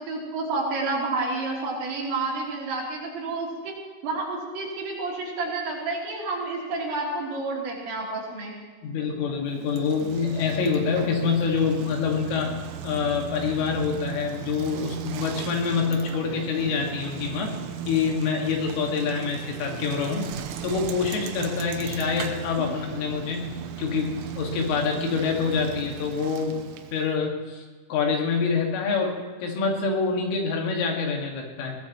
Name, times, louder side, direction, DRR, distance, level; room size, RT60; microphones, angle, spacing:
voice 1, 0.0-3.7 4.0-8.6 22.6-22.7, right 3 dB, 65° right, -4 dB, 5.5 m, -30 dB
voice 2, 8.8-12.6 12.8-17.6 17.9-20.3 20.6-23.5 23.8-26.6 26.9-27.6 27.9-31.8, left 5 dB, 75° left, 1 dB, 4.5 m, -26 dB
Bicycle, 9.5-27.1, right 9 dB, 85° right, 3.4 m, -37 dB
21.5 x 18.5 x 3.1 m, 1.5 s
omnidirectional pair, 5.8 m